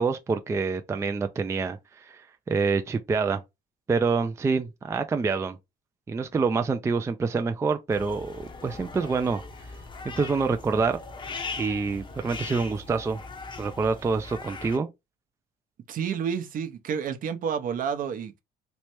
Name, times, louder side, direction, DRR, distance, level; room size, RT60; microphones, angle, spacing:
voice 1, 0.0-2.2 2.5-3.4 3.9-5.6 6.1-9.4 10.2-11.0 11.6-13.2 13.6-14.9, right 4 dB, 15° right, 0.3 m, -26 dB
sound 1, 7.9-14.8, left 4 dB, 30° left, 0.7 m, -40 dB
voice 2, 15.9-18.4, right 7 dB, 55° right, 0.7 m, -30 dB
3.2 x 3.2 x 3.0 m
cardioid pair, 110°, 17 cm